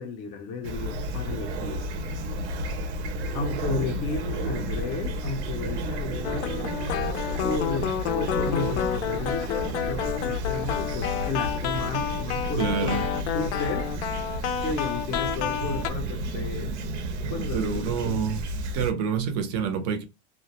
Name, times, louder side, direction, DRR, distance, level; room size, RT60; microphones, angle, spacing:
voice 1, 0.0-1.8 3.3-6.7 7.4-13.0 13.3-13.9 14.6-16.7 17.3-17.8 18.0-18.2, left 4 dB, 25° left, 0.4 m, -33 dB
Fowl / Chirp tweet, 0.6-18.9, right 1 dB, 90° right, 0.7 m, -32 dB
sound 1, 6.2-15.9, left 9 dB, 85° left, 0.5 m, -30 dB
voice 2, 12.6-13.1 15.6-15.7 17.2-18.4 18.7-20.0, right 7 dB, 35° right, 0.5 m, -28 dB
2.3 x 2.0 x 2.8 m
supercardioid pair, 160°, 34 cm